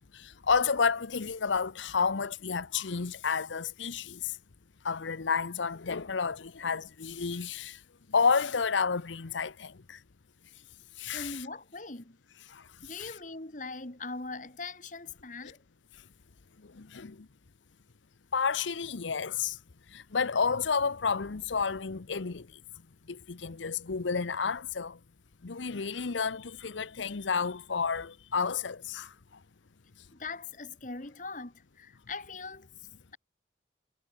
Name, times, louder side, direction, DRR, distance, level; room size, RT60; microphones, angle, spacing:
voice 1, 0.1-4.4 4.8-7.8 8.1-10.0 11.0-11.4 12.5-13.1 16.8-17.2 18.3-19.6 19.9-22.5 23.1-25.0 25.4-29.1, left 5 dB, 85° left, 0.8 m, -31 dB
voice 2, 11.1-12.2 12.8-15.6 30.1-33.2, left 3 dB, 45° left, 1.9 m, -41 dB
head